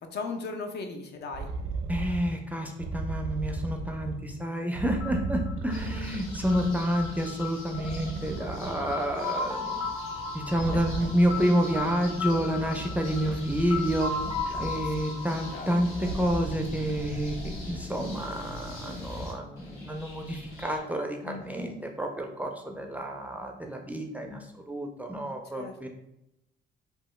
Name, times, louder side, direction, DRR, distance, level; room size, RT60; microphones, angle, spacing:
voice 1, 0.1-1.5 10.7-10.8 14.5-14.7 15.5-15.7 21.2-21.8 25.5-25.7, left 4 dB, 60° left, 4 dB, 0.5 m, -37 dB
sound 1, 1.3-2.3 2.8-4.3 4.7-7.3 7.7-9.3 10.5-15.0 15.9-17.9 18.8-18.9, right 4 dB, 75° right, 0.4 m, -36 dB
voice 2, 1.9-9.8 10.3-14.1 14.6-25.9, equal, 10° right, 2 dB, 0.4 m, -29 dB
sound 2, 5.0-16.8, left 4 dB, 25° left, 0.8 m, -37 dB
sound 3, 5.7-20.8, left 1 dB, 90° left, 0.8 m, -43 dB
2.9 x 2.2 x 3.1 m, 0.85 s
cardioid pair, 90°, 20 cm